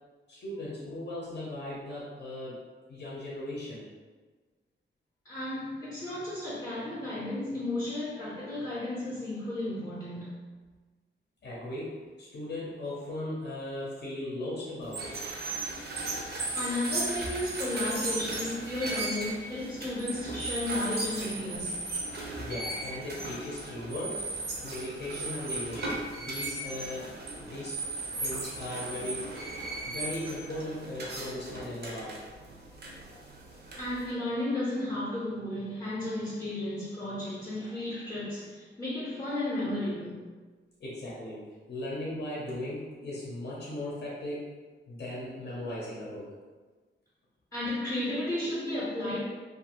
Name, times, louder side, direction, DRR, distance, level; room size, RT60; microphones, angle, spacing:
voice 1, 0.3-2.6 2.9-3.8 11.4-15.2 22.4-24.3 24.6-27.8 28.2-29.3 29.8-32.2 40.8-44.5 44.9-46.3, left 1 dB, 55° left, -6 dB, 0.6 m, -38 dB
voice 2, 5.2-10.4 16.5-21.8 33.8-40.2 47.5-49.2, left 1 dB, 15° left, -8 dB, 0.6 m, -33 dB
sound 1, 14.8-34.1, right 2 dB, 55° right, 0.5 m, -36 dB
2.5 x 2.4 x 2.9 m, 1.4 s
wide cardioid pair, 180°, 20 cm